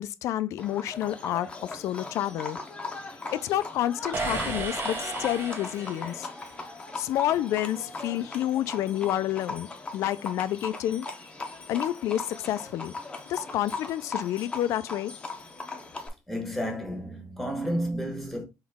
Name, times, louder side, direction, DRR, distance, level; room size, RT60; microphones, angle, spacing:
voice 1, 0.0-2.6 3.3-6.3 7.0-9.7 9.9-11.1 11.7-12.9 13.3-15.1, left 12 dB, 75° left, 0.3 m, -29 dB
Livestock farm animals working animals, 0.6-16.1, left 3 dB, 20° left, 0.7 m, -39 dB
sound 1, 4.1-6.4, right 3 dB, 40° right, 1.0 m, -33 dB
voice 2, 16.3-18.4, equal, ahead, 1.1 m, -31 dB
3.8 x 3.0 x 3.5 m
cardioid pair, 155°, 5 cm